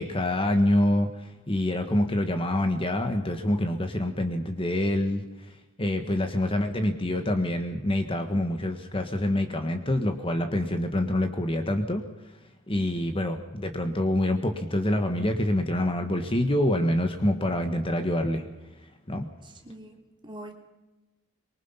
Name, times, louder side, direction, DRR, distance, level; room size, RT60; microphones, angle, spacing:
voice 1, 0.0-12.3 12.7-18.5 19.1-19.3, left 1 dB, 25° left, 6 dB, 1.6 m, -26 dB
voice 2, 5.8-6.3 12.7-13.2 19.4-20.5, right 1 dB, 20° right, 2 dB, 3.5 m, -45 dB
25.5 x 23.5 x 5.8 m, 1.0 s
head